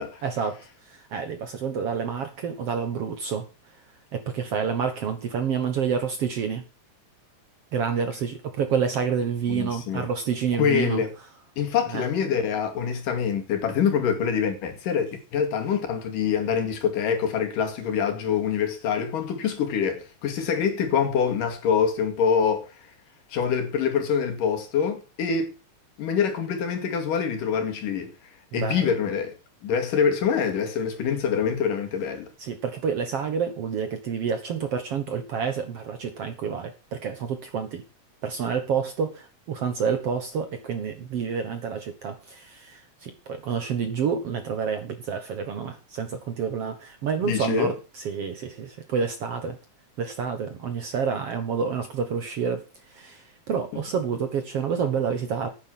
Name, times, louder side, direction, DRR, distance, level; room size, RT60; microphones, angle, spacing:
voice 1, 0.2-3.5 4.1-6.6 7.7-11.0 11.9-12.1 28.5-29.0 32.4-37.8 38.2-49.6 50.0-55.5, right 6 dB, 55° right, 2.0 m, -28 dB
voice 2, 9.5-10.1 10.6-11.1 11.6-22.7 23.3-25.5 26.0-28.1 28.5-29.3 29.6-32.3 47.2-47.7, left 7 dB, 85° left, 3.9 m, -25 dB
10.5 x 9.8 x 6.2 m
omnidirectional pair, 3.7 m